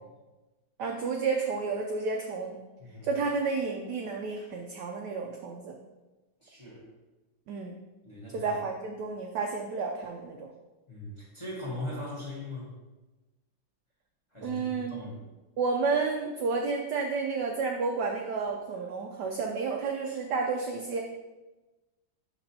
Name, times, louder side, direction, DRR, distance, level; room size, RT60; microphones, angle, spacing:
voice 1, 0.8-2.6 3.0-5.8 7.5-7.8 8.3-10.5 14.4-15.0 15.6-21.0, right 4 dB, 75° right, 2 dB, 1.0 m, -31 dB
voice 2, 2.8-3.2 6.4-6.8 8.0-8.5 10.9-12.7 14.3-15.2, left 1 dB, 15° left, -5 dB, 1.4 m, -40 dB
6.0 x 5.7 x 2.8 m, 1.1 s
omnidirectional pair, 2.2 m